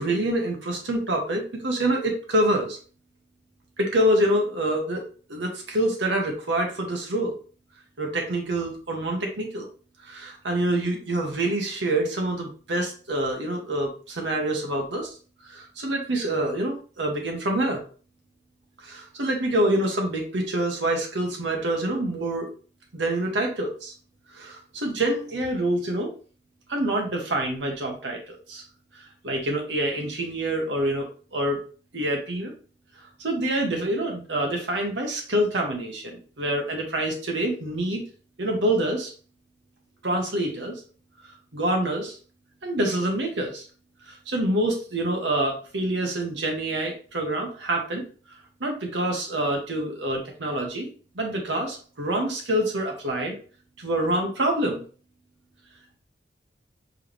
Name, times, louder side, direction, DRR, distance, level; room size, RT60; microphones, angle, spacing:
voice 1, 0.0-2.8 3.8-5.0 5.3-7.3 8.0-9.7 10.0-15.1 15.5-17.8 18.8-22.5 22.9-23.9 24.3-26.1 26.7-28.6 29.2-31.6 31.9-32.5 33.2-38.0 38.4-39.1 40.0-40.8 41.5-42.2 42.6-43.7 44.1-48.0 48.6-50.9 51.1-53.4 53.8-54.8, right 1 dB, 85° right, 1 dB, 1.2 m, -26 dB
4.7 x 3.0 x 3.3 m, 0.40 s
head